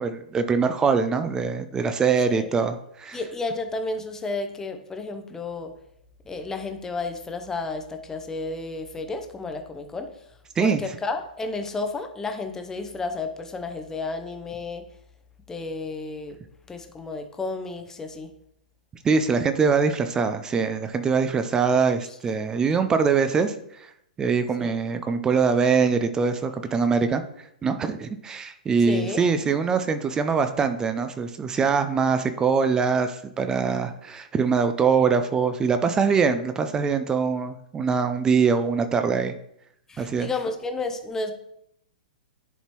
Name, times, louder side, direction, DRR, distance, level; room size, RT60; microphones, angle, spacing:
voice 1, 0.0-3.2 10.6-10.8 19.0-23.9 24.2-27.2 27.6-39.3 40.0-40.3, right 5 dB, 15° right, 9 dB, 0.5 m, -23 dB
voice 2, 3.1-5.7 6.3-14.8 15.5-16.4 16.7-18.3 22.0-22.2 24.6-24.8 28.9-29.3 39.9-41.3, left 3 dB, 10° left, 7 dB, 0.8 m, -32 dB
10.5 x 4.1 x 3.0 m, 0.74 s
figure-of-eight pair, 110°, 5 cm